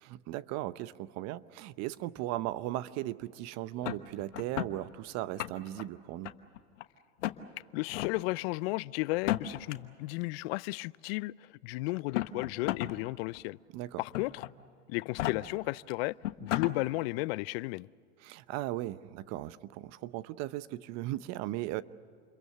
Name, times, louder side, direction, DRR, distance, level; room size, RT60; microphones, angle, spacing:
voice 1, 0.0-6.3 13.7-14.0 18.2-21.8, right 15 dB, 45° right, 0.8 m, -37 dB
sound 1, 3.8-4.7 5.2-5.8 6.2-6.8 7.2-7.4 7.9-8.1 9.1-9.7 10.8-10.9 12.0-12.9 13.3-13.4 14.1-14.5 15.0-15.3 15.9-16.0 16.2-16.7, left 15 dB, 70° left, 1.3 m, -33 dB
voice 2, 7.7-13.6 14.0-14.4 14.9-16.2 16.4-17.9, left 22 dB, 55° left, 0.5 m, -34 dB
28.0 x 22.5 x 6.9 m
hypercardioid pair, 110°, 37 cm